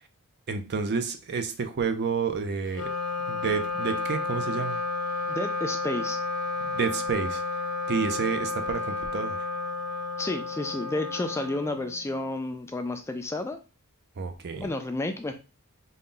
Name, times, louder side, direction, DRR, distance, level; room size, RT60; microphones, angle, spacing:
voice 1, 0.5-2.9 3.3-4.8 6.6-7.4 7.9-9.4 14.2-14.7, right 5 dB, 50° right, 8 dB, 0.5 m, -29 dB
Wind instrument woodwind instrument, 2.6-12.3, left 3 dB, 85° left, 0.6 m, -32 dB
voice 2, 5.3-6.2 10.2-13.6 14.6-15.3, left 2 dB, 10° left, 6 dB, 0.3 m, -31 dB
3.8 x 2.2 x 3.7 m, 0.31 s
head